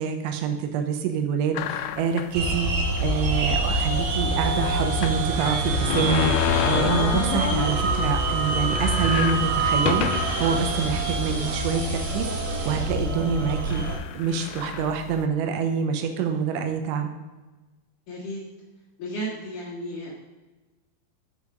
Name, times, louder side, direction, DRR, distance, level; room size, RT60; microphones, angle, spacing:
voice 1, 0.0-2.7 3.0-13.8 14.1-17.1, right 6 dB, 90° right, 6 dB, 3.2 m, -26 dB
sound 1, 1.6-2.4 3.0-3.1 3.4-3.5 5.0-7.9 8.3-8.4 8.7-10.5 11.1-11.2 12.1-12.4 13.2-13.3 13.7-15.3, left 10 dB, 85° left, 2.5 m, -29 dB
sound 2, 2.3-14.0, right 2 dB, 60° right, 3.3 m, -25 dB
voice 2, 18.1-18.4 19.0-20.1, right 1 dB, 55° left, -4 dB, 2.5 m, -33 dB
7.1 x 6.4 x 5.0 m, 1.2 s
omnidirectional pair, 5.3 m